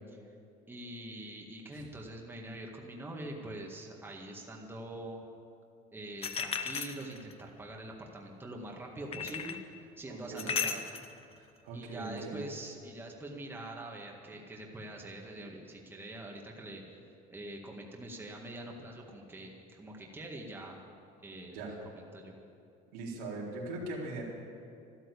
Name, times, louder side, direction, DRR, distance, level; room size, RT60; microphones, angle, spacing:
voice 1, 0.7-5.3 5.9-9.6 10.0-10.8 11.7-16.8 17.3-20.8 21.2-21.6 22.0-22.3, right 1 dB, 10° right, 0 dB, 1.8 m, -44 dB
sound 1, 6.2-7.4 9.1-9.6 10.4-11.1, left 6 dB, 35° left, 0.9 m, -35 dB
voice 2, 10.1-10.5 11.4-12.4 21.5-21.7 22.9-24.2, right 2 dB, 90° right, -3 dB, 3.8 m, -40 dB
13.0 x 12.0 x 8.5 m, 2.5 s
cardioid pair, 130°, 18 cm